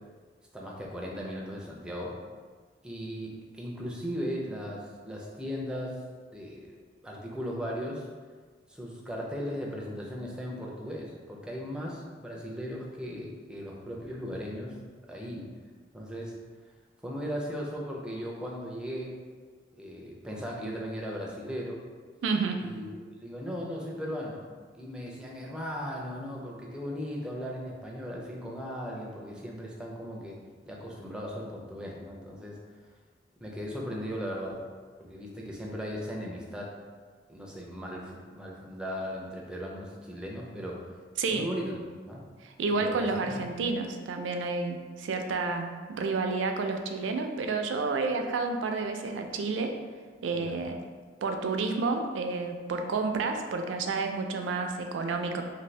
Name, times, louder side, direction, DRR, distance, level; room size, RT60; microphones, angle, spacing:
voice 1, 0.5-2.2 2.8-6.0 6.3-6.8 7.0-8.1 8.7-14.7 15.1-15.5 15.9-16.4 17.0-19.1 19.8-21.8 22.6-24.4 24.8-32.6 33.4-34.6 35.0-36.7 37.3-40.9 41.3-41.8 42.0-42.3 42.7-43.1 43.5-43.6 50.3-50.6, equal, 5° right, -3 dB, 0.4 m, -37 dB
voice 2, 22.2-22.6 41.2-41.5 42.4-49.7 50.2-50.7 51.2-55.4, right 4 dB, 80° right, 5 dB, 0.3 m, -30 dB
2.6 x 2.5 x 3.2 m, 1.5 s
head